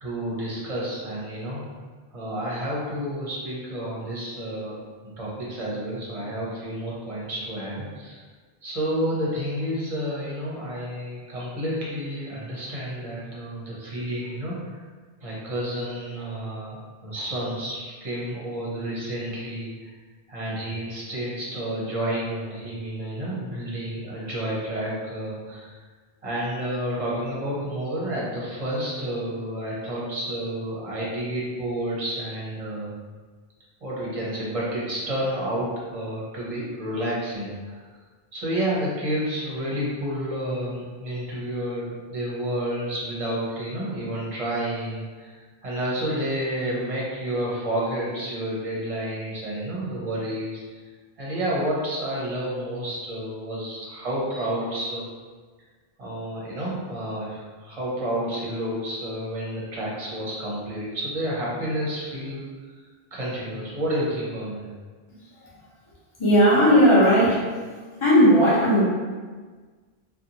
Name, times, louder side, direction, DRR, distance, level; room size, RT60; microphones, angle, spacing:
voice 1, 0.0-1.6 2.1-4.8 5.2-8.2 8.6-14.8 15.2-19.7 20.3-25.7 26.2-32.9 33.8-37.7 38.3-45.3 45.6-50.8 51.2-55.1 56.0-62.4 63.1-64.7, right 1 dB, 40° right, -6 dB, 0.7 m, -30 dB
voice 2, 66.2-67.4 68.0-68.8, equal, 30° left, -8 dB, 0.9 m, -16 dB
2.6 x 2.3 x 2.7 m, 1.4 s
omnidirectional pair, 1.0 m